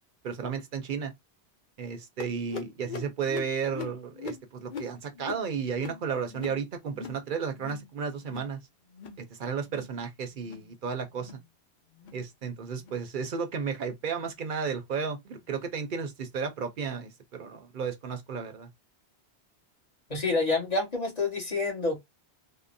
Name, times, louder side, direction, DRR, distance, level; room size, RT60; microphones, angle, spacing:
voice 1, 0.2-1.1 1.8-8.6 9.2-11.4 12.1-18.7, right 6 dB, 55° right, 0.7 m, -33 dB
sound 1, 2.2-7.2 7.5-7.9 8.2-8.6 8.9-9.2 9.6-10.0 10.4-10.7 11.1-11.4 11.9-12.2 12.8-13.0 13.6-13.8 14.5-14.6 15.4-15.5, left 6 dB, 55° left, 0.7 m, -42 dB
voice 2, 20.1-22.0, left 3 dB, 40° left, 1.3 m, -28 dB
3.6 x 2.0 x 2.5 m
omnidirectional pair, 1.1 m